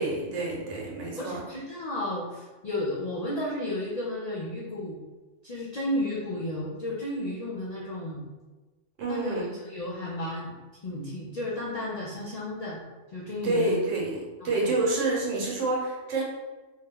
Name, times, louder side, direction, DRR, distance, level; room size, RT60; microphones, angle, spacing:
voice 1, 0.0-1.4 9.0-9.5 13.4-14.2 14.4-16.2, right 2 dB, 85° right, -3 dB, 1.2 m, -28 dB
voice 2, 1.2-5.0 5.4-8.2 9.1-10.6 10.8-12.8 13.1-13.8 14.4-14.8, left 1 dB, 65° left, -6 dB, 0.4 m, -33 dB
2.6 x 2.2 x 3.5 m, 1.2 s
omnidirectional pair, 1.3 m